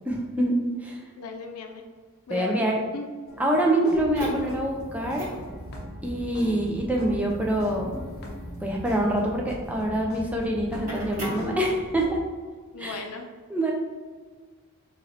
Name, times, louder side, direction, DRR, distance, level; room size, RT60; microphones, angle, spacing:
voice 1, 0.0-1.0 2.3-2.8 3.4-5.3 6.0-7.9 8.6-12.2 12.8-13.0 13.5-13.7, right 1 dB, 5° right, -1 dB, 0.4 m, -25 dB
voice 2, 1.2-1.8 2.3-2.6 2.9-3.1 12.7-13.2, left 4 dB, 90° left, 4 dB, 0.5 m, -37 dB
sound 1, 3.3-6.1 6.4-9.0 9.5-9.6 10.1-10.2 10.6-12.2, left 1 dB, 45° left, 0.6 m, -42 dB
sound 2, 3.9-12.2, equal, 40° right, 1.1 m, -38 dB
3.8 x 3.0 x 2.8 m, 1.4 s
head